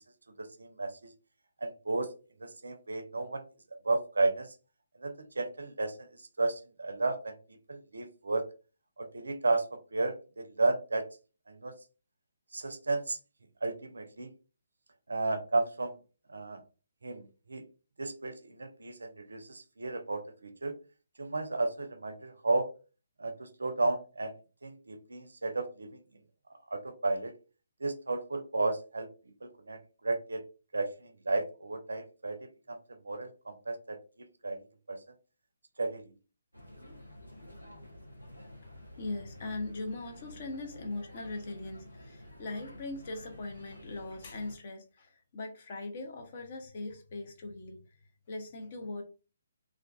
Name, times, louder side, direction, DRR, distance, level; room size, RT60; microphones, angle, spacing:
voice 1, 0.4-1.0 1.6-2.1 2.4-3.4 3.8-4.5 5.0-7.4 7.7-8.5 9.0-11.1 11.5-11.7 12.5-13.2 13.6-14.3 15.1-16.0 16.3-16.6 17.0-17.6 18.0-20.8 21.2-22.7 23.2-24.3 24.6-26.0 26.7-27.3 27.8-29.1 29.4-30.5 30.7-34.0 34.4-34.6 34.9-35.0 35.8-36.1, right 3 dB, 65° right, 7 dB, 0.4 m, -33 dB
sound 1, 36.5-44.6, left 1 dB, 90° left, 0.7 m, -50 dB
voice 2, 38.6-49.0, left 2 dB, 40° left, 4 dB, 0.6 m, -40 dB
2.4 x 2.2 x 2.3 m, 0.34 s
figure-of-eight pair, 135°, 0 cm